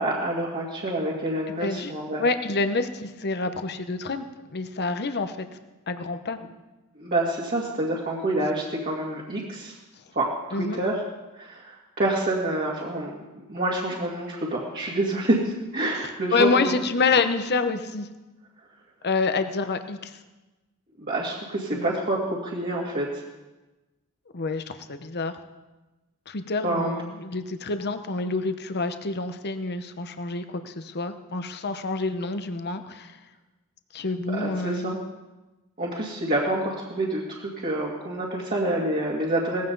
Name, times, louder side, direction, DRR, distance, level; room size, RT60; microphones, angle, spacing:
voice 1, 0.0-2.2 7.0-9.7 10.2-11.0 11.4-13.2 13.5-16.7 21.0-23.1 26.6-26.9 34.3-35.0 35.8-39.6, right 1 dB, 40° right, -5 dB, 2.2 m, -27 dB
voice 2, 1.6-1.9 2.2-4.2 4.5-5.5 5.9-6.4 10.5-10.8 16.3-18.1 19.0-20.1 21.7-21.9 24.3-25.4 26.3-33.2 33.9-34.9, left 3 dB, 50° left, 9 dB, 0.9 m, -27 dB
18.5 x 15.0 x 4.0 m, 1.1 s
head